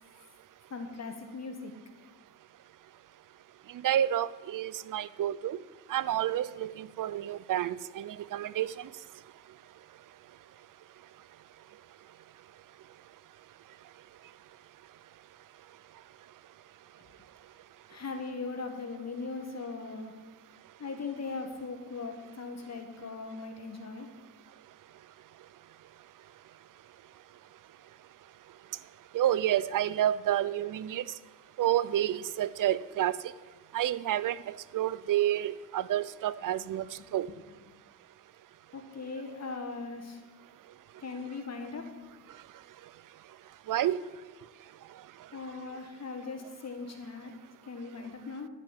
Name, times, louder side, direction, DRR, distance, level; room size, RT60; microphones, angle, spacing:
voice 1, 0.7-1.7 17.9-20.2 20.8-24.1 37.0-37.1 38.7-40.2 41.0-42.0 45.3-48.5, left 4 dB, 45° left, 5 dB, 1.5 m, -39 dB
voice 2, 3.7-5.6 5.9-8.9 29.1-31.0 31.6-33.3 33.7-37.3 43.7-44.0, right 12 dB, 65° right, 18 dB, 0.6 m, -29 dB
11.5 x 5.8 x 8.9 m, 1.4 s
cardioid pair, 60°, 35 cm